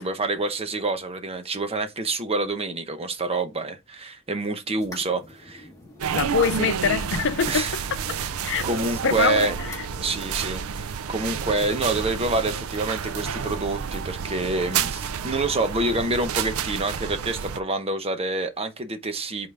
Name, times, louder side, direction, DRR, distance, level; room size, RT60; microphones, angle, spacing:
voice 1, 0.0-5.7 7.5-7.7 8.6-9.6 10.0-19.5, right 2 dB, 30° right, 0.9 m, -27 dB
sound 1, 4.8-10.4, left 2 dB, 15° left, 1.6 m, -46 dB
sound 2, 6.0-17.6, right 7 dB, 75° right, 0.5 m, -30 dB
voice 2, 6.1-7.7 8.4-8.7 9.0-9.5, left 5 dB, 60° left, 0.7 m, -23 dB
5.4 x 3.9 x 4.8 m
head